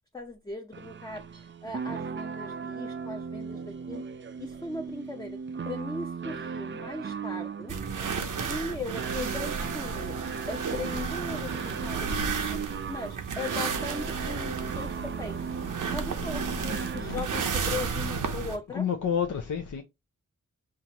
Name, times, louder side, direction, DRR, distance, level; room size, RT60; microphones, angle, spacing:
voice 1, 0.1-1.3 1.6-4.0 4.4-5.4 5.6-7.7 8.5-10.2 10.5-12.6 12.9-15.4 15.9-18.9, left 2 dB, 10° left, 0.6 m, -38 dB
sound 1, 0.7-17.5, right 6 dB, 40° right, 0.4 m, -37 dB
sound 2, 7.7-18.6, right 5 dB, 85° right, 0.7 m, -33 dB
voice 2, 16.8-17.1 18.7-19.8, left 7 dB, 75° left, 0.6 m, -30 dB
5.7 x 2.5 x 2.9 m
wide cardioid pair, 75°, 30 cm